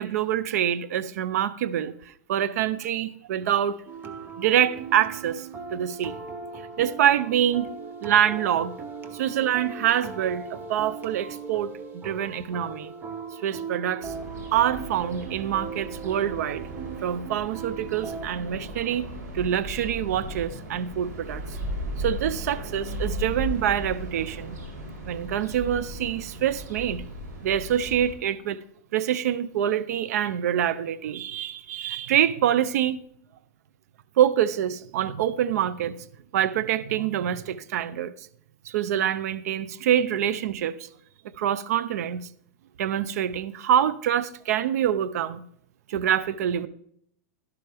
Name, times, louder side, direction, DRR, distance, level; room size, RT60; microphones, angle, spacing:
voice 1, 0.0-3.8 4.4-6.1 6.8-7.7 8.0-8.7 9.1-12.9 13.4-14.1 14.5-16.6 17.0-19.1 19.3-21.4 22.0-24.6 25.1-27.0 27.4-28.6 28.9-33.0 34.2-36.0 36.3-38.3 38.6-40.9 41.4-42.3 42.8-45.4 45.9-46.7, right 10 dB, 70° right, 0.6 m, -25 dB
sound 1, 3.9-18.3, right 5 dB, 20° right, 1.0 m, -38 dB
sound 2, 14.0-28.1, equal, 90° right, 4.1 m, -36 dB
12.0 x 11.5 x 3.4 m
supercardioid pair, 140°, 9 cm